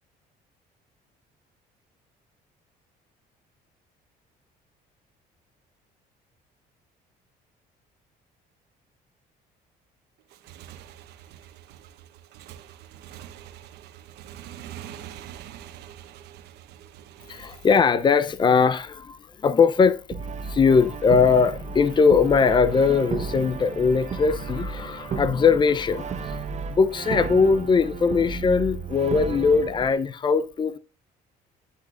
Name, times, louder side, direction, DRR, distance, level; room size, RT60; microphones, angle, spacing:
Motorcycle / Engine, 10.2-17.8, right 11 dB, 80° right, 1.1 m, -44 dB
voice 1, 17.3-20.0 20.4-26.4 26.7-30.8, left 5 dB, 25° left, 0.7 m, -20 dB
Brass instrument, 20.1-29.9, right 5 dB, 40° right, 1.0 m, -33 dB
10.5 x 9.5 x 2.5 m
cardioid pair, 110°, 17 cm